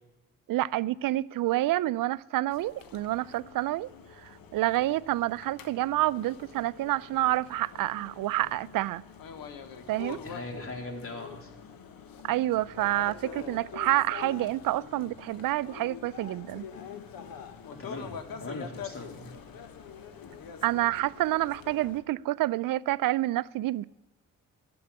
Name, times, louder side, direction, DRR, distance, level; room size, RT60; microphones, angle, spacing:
voice 1, 0.5-3.9 4.2-9.0 9.9-10.2 12.2-16.7 20.6-23.8, right 15 dB, 65° right, 0.5 m, -28 dB
sound 1, 2.5-22.0, left 7 dB, 70° left, 1.4 m, -45 dB
voice 2, 10.1-11.5 17.8-19.4, left 2 dB, 35° left, 3.9 m, -40 dB
12.0 x 7.0 x 9.7 m
hypercardioid pair, 45°, 36 cm